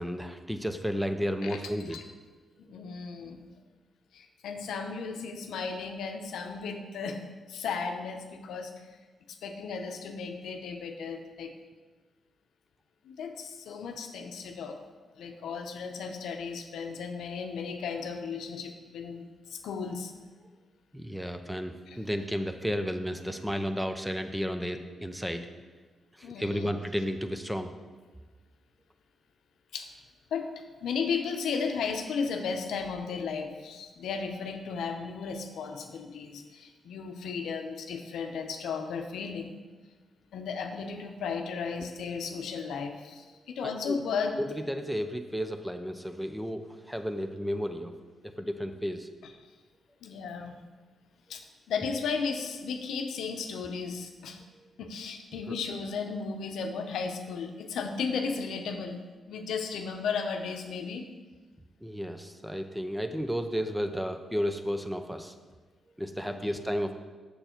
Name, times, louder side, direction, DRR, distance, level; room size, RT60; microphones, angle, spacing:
voice 1, 0.0-2.0 20.9-25.5 26.2-27.7 43.6-44.0 44.4-47.9 48.2-49.1 55.5-55.6 61.8-65.3 66.0-66.9, equal, 5° right, 7 dB, 0.6 m, -33 dB
voice 2, 2.6-3.4 4.1-7.2 7.5-8.9 9.3-11.5 13.0-14.8 15.2-20.1 21.9-22.0 26.2-26.8 29.7-30.0 30.3-39.5 40.3-44.4 49.2-49.3 50.0-50.6 51.3-54.4 54.8-59.0 59.3-61.1 66.3-66.5, left 5 dB, 90° left, 5 dB, 0.7 m, -35 dB
6.9 x 6.6 x 4.4 m, 1.4 s
cardioid pair, 90°, 0 cm